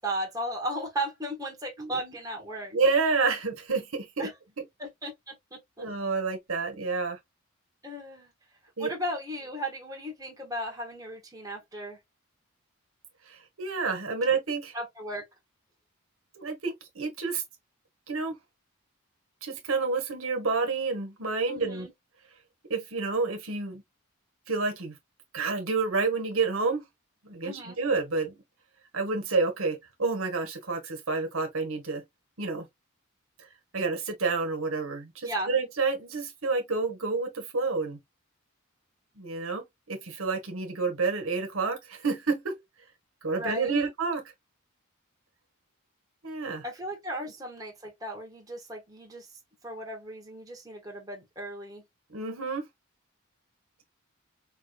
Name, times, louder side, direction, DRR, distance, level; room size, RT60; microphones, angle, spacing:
voice 1, 0.0-2.7 4.2-4.3 4.8-5.8 7.8-8.3 8.8-12.0 14.7-15.2 21.5-21.9 27.4-27.8 35.2-35.5 43.3-43.8 46.6-49.3 49.6-51.8, equal, 15° right, 1.5 m, -36 dB
voice 2, 1.8-2.1 2.7-4.3 5.8-7.2 8.8-8.9 13.3-14.7 16.4-17.4 18.1-18.4 19.4-21.9 22.7-23.8 24.5-24.9 25.3-26.8 27.2-28.3 28.9-32.0 32.4-32.7 33.7-38.0 39.2-42.5 43.2-44.2 46.2-46.6 52.1-52.7, right 4 dB, 70° right, 1.4 m, -29 dB
5.1 x 3.3 x 2.4 m
head